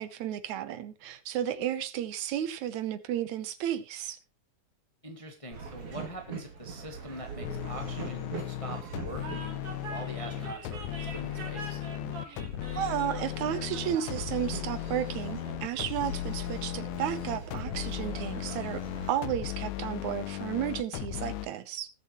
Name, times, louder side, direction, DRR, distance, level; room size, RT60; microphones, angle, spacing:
voice 1, 0.0-4.2 12.2-12.3 12.8-18.8 19.1-21.9, right 10 dB, 75° right, 2.2 m, -33 dB
voice 2, 5.0-11.8, right 1 dB, 15° left, 1.2 m, -43 dB
Train, 5.5-19.4, right 5 dB, 50° right, 3.3 m, -42 dB
sound 1, 7.4-21.5, left 15 dB, 85° left, 2.1 m, -36 dB
19.0 x 7.2 x 3.0 m
omnidirectional pair, 3.4 m